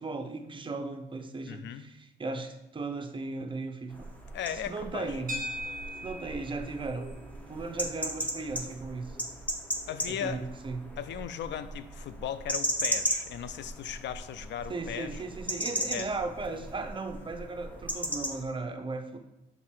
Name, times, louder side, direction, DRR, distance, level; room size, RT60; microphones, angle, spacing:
voice 1, 0.0-4.1 4.7-5.4 6.0-7.1 7.5-9.2 10.1-10.9 14.7-19.2, right 3 dB, 25° right, 6 dB, 0.7 m, -36 dB
voice 2, 1.5-1.9 4.3-5.1 9.9-10.4 11.0-15.2 15.9-16.1, left 9 dB, 65° left, 12 dB, 0.5 m, -37 dB
sound 1, 3.9-18.4, equal, 5° left, 0.9 m, -37 dB
sound 2, 5.3-13.7, equal, 40° right, 1.5 m, -45 dB
5.8 x 3.7 x 4.6 m, 0.93 s
cardioid pair, 90°, 20 cm